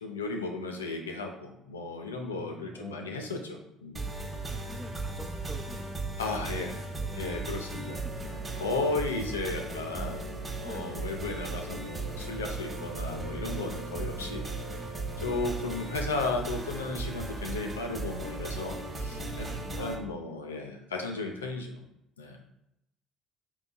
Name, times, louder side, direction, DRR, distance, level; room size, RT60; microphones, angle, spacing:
voice 1, 0.0-4.0 6.2-6.8 7.1-8.0 8.6-10.2 10.6-14.4 15.2-19.5 19.8-21.8 22.2-22.4, left 3 dB, 80° left, 3 dB, 0.6 m, -34 dB
voice 2, 2.3-3.3 4.5-6.0 6.5-7.3 8.2-8.3 9.7-10.1 10.6-11.0 13.9-14.4 19.1-20.2, equal, ahead, 1 dB, 0.9 m, -46 dB
sound 1, 3.9-19.9, right 2 dB, 25° right, 1.0 m, -36 dB
4.7 x 3.9 x 2.2 m, 0.80 s
figure-of-eight pair, 55°, 0 cm